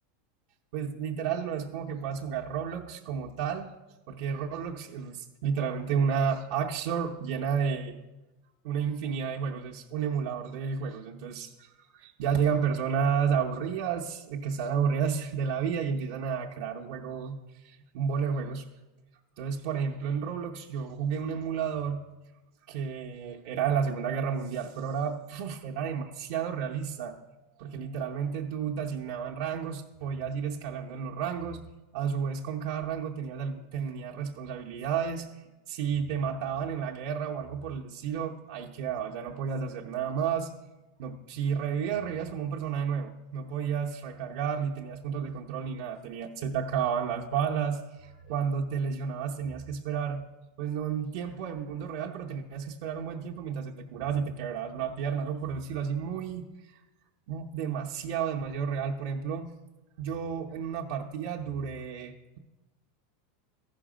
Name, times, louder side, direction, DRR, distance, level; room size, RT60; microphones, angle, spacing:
voice 1, 0.7-3.7 4.1-8.0 8.6-17.4 17.6-18.7 19.4-22.0 22.7-27.2 27.6-31.6 31.9-35.3 35.7-40.5 41.0-50.2 50.6-56.5 57.3-59.5 60.0-62.4, right 7 dB, 65° right, 0 dB, 0.7 m, -31 dB
13.5 x 5.8 x 5.0 m, 1.1 s
supercardioid pair, 125°, 0 cm